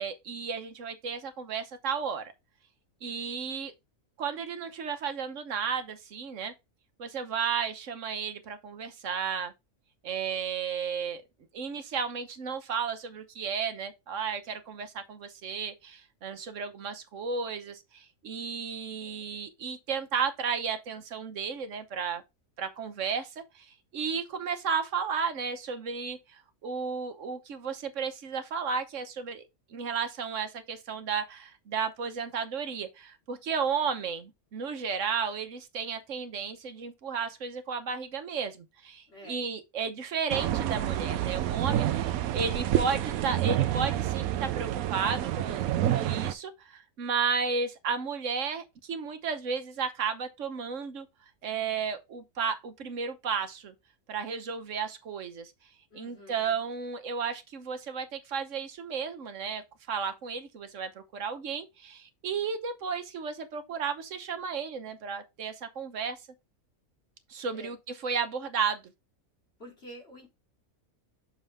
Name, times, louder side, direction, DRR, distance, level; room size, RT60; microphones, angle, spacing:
voice 1, 0.0-2.3 3.0-3.7 4.2-6.5 7.0-9.5 10.0-11.2 11.5-22.2 22.6-51.1 51.4-53.7 54.1-55.5 55.9-59.6 59.9-66.2 67.3-68.8, right 6 dB, 65° right, 1.3 m, -33 dB
voice 2, 39.1-39.4 55.9-56.6 67.5-67.7 69.6-70.3, equal, 50° left, 3.2 m, -48 dB
sound 1, 40.3-46.3, right 12 dB, 85° right, 1.1 m, -28 dB
6.4 x 5.5 x 3.4 m
omnidirectional pair, 1.4 m